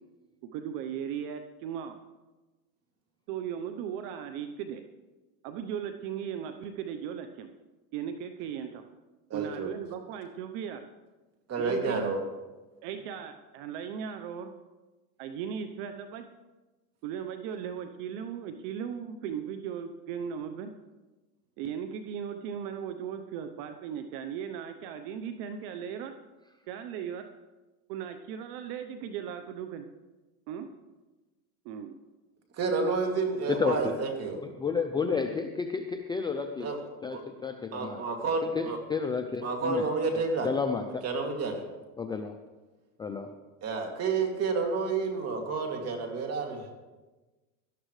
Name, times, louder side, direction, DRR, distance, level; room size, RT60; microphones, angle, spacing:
voice 1, 0.5-2.0 3.3-4.8 5.4-7.5 7.9-8.8 9.3-10.8 11.6-12.1 12.8-14.5 15.2-16.2 17.0-20.7 21.6-26.1 26.7-27.3 27.9-29.9 30.5-30.7 31.6-32.0, right 8 dB, 60° right, 8 dB, 0.9 m, -37 dB
voice 2, 9.3-9.7 11.5-12.2 32.6-34.4 36.6-36.8 37.1-37.2 37.7-38.8 39.4-40.5 41.0-41.6 43.6-46.7, right 4 dB, 35° right, 2 dB, 2.6 m, -30 dB
voice 3, 33.5-34.0 34.4-36.7 37.0-38.0 38.5-39.9 40.4-41.0 42.0-42.4 43.0-43.3, left 5 dB, 10° left, 5 dB, 0.4 m, -31 dB
18.0 x 12.5 x 3.3 m, 1.2 s
supercardioid pair, 130°, 45 cm